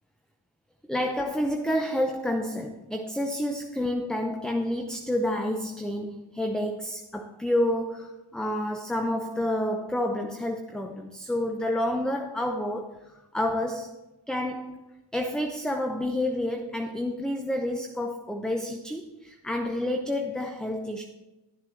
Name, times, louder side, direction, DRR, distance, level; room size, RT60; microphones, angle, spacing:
voice 1, 0.9-14.0 14.3-14.8 15.1-21.0, left 1 dB, ahead, 4 dB, 0.6 m, -29 dB
12.0 x 7.3 x 3.2 m, 1.0 s
cardioid pair, 75°, 44 cm